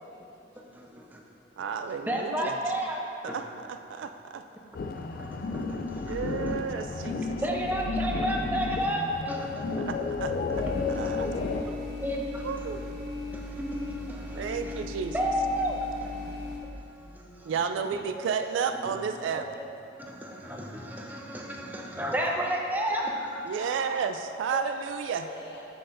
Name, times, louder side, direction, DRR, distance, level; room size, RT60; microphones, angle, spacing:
voice 1, 0.6-1.2 2.1-3.0 3.3-3.4 5.2-6.6 7.4-9.8 10.5-11.0 12.0-12.5 13.3-14.8 15.1-16.1 17.4-17.5 18.1-18.2 18.8-18.9 19.3-19.7 20.1-23.5 24.5-24.6, equal, 10° right, -1 dB, 0.6 m, -32 dB
voice 2, 1.6-2.6 3.2-4.4 6.1-7.4 9.8-11.3 12.4-12.8 14.4-15.1 17.5-19.5 23.5-25.2, right 6 dB, 90° right, 8 dB, 0.3 m, -32 dB
sound 1, 4.7-11.6, left 4 dB, 50° left, 0.3 m, -32 dB
voice 3, 6.8-8.0 8.3-9.0 10.9-11.8 15.0-15.1 17.0-17.5 22.0-22.4 23.6-24.0 25.1-25.6, left 1 dB, 65° left, -4 dB, 1.2 m, -46 dB
sound 2, 10.5-16.6, left 2 dB, 65° right, 1.3 m, -38 dB
7.7 x 7.5 x 2.6 m, 2.7 s
head